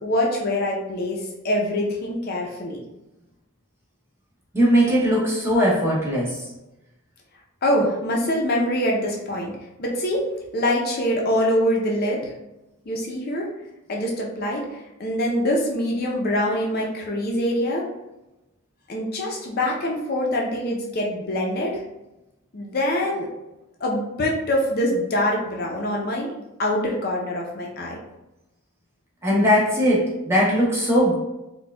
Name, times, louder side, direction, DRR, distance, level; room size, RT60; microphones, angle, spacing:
voice 1, 0.0-2.8 7.6-9.5 9.8-10.3 10.5-12.3 12.9-13.5 13.9-17.9 18.9-21.8 22.5-23.3 23.8-26.3 26.6-28.0, left 1 dB, 45° left, -1 dB, 0.5 m, -24 dB
voice 2, 4.5-6.4 29.2-31.1, equal, 10° right, -5 dB, 0.7 m, -19 dB
4.2 x 2.2 x 2.2 m, 0.96 s
head